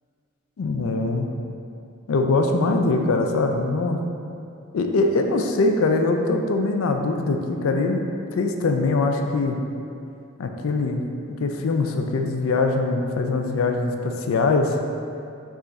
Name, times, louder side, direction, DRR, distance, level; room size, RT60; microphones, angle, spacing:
voice 1, 0.6-1.3 2.1-4.0 4.7-8.1 8.3-9.6 10.4-11.0 11.4-14.8, left 3 dB, 80° left, 4 dB, 0.4 m, -22 dB
4.8 x 2.5 x 4.0 m, 2.5 s
head